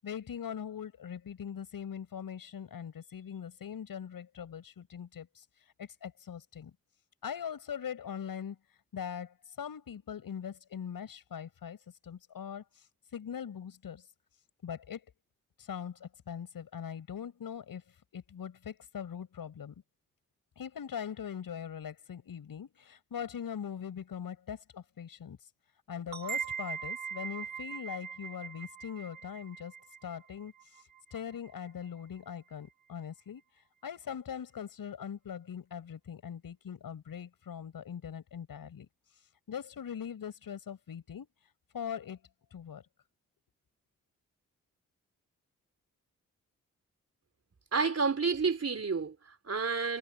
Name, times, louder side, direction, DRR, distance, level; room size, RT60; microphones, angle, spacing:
voice 1, 0.0-5.4 5.8-6.7 7.2-8.6 8.9-11.8 12.0-12.8 13.1-14.0 14.6-15.0 15.6-17.8 18.1-19.7 20.6-25.4 25.9-29.7 30.0-30.5 31.1-33.4 33.8-38.9 39.5-41.3 41.7-42.2 42.5-42.8, left 8 dB, 80° left, 6.4 m, -41 dB
sound 1, 26.1-31.5, right 7 dB, 75° right, 4.2 m, -41 dB
voice 2, 47.7-50.0, right 5 dB, 45° right, 3.6 m, -30 dB
supercardioid pair, 45°, 34 cm